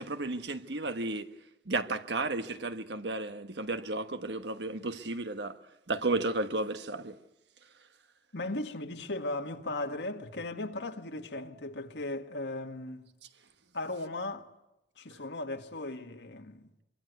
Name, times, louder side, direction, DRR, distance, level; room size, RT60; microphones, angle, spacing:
voice 1, 0.0-1.3 1.6-5.6 5.9-7.2, right 2 dB, 85° right, 1.3 m, -33 dB
voice 2, 8.3-13.1 13.7-14.5 15.0-16.7, left 2 dB, 90° left, 1.7 m, -37 dB
25.0 x 23.5 x 8.2 m
head